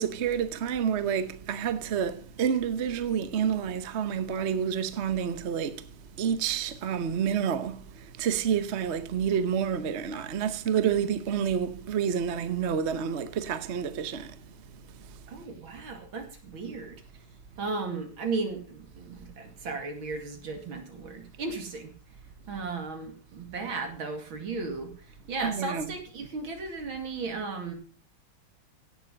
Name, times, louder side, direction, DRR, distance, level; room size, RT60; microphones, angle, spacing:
voice 1, 0.0-5.8 6.2-7.8 8.2-14.3 25.4-25.9, right 8 dB, 50° right, 0.9 m, -29 dB
voice 2, 15.3-17.0 17.6-21.9 22.5-27.7, right 3 dB, 70° right, 3.1 m, -35 dB
16.5 x 6.9 x 5.2 m
omnidirectional pair, 2.3 m